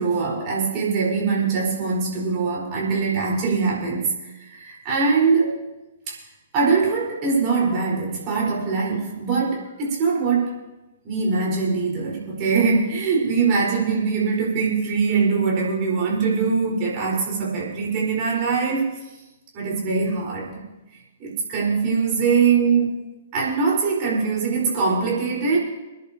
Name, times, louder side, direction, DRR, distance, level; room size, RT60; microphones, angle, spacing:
voice 1, 0.0-5.6 6.1-6.2 6.5-10.6 11.0-18.9 19.5-20.6 21.2-22.9 23.3-25.6, right 5 dB, 30° right, -4 dB, 4.6 m, -22 dB
27.0 x 10.5 x 2.9 m, 1.0 s
figure-of-eight pair, 120°, 0 cm